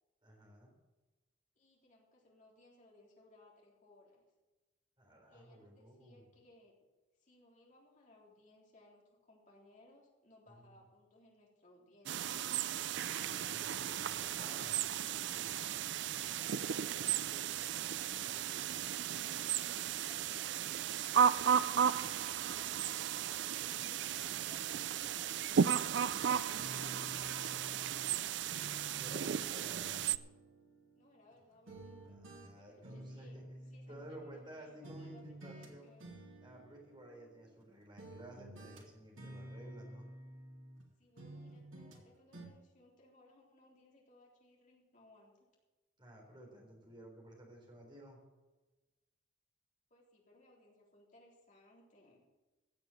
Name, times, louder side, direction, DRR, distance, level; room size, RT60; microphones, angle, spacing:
voice 1, 0.2-0.7 5.0-6.3 10.5-10.7 13.0-14.8 29.0-30.0 32.0-33.4 33.9-35.9 36.4-40.1 46.0-48.2, right 1 dB, 25° right, 0 dB, 4.0 m, -54 dB
voice 2, 1.6-4.2 5.3-6.8 7.2-12.4 15.8-19.6 20.0-28.4 31.0-32.2 32.5-36.1 41.0-45.5 49.9-52.2, left 1 dB, 40° left, -2 dB, 3.7 m, -64 dB
sound 1, 12.1-30.2, right 8 dB, 60° right, 0.4 m, -35 dB
sound 2, 26.6-28.2 28.5-31.4 31.7-34.5 34.8-35.7 36.0-37.6 38.0-40.9 41.2-42.0 42.3-42.5, right 1 dB, 80° right, 2.7 m, -51 dB
16.0 x 7.1 x 7.7 m, 1.2 s
head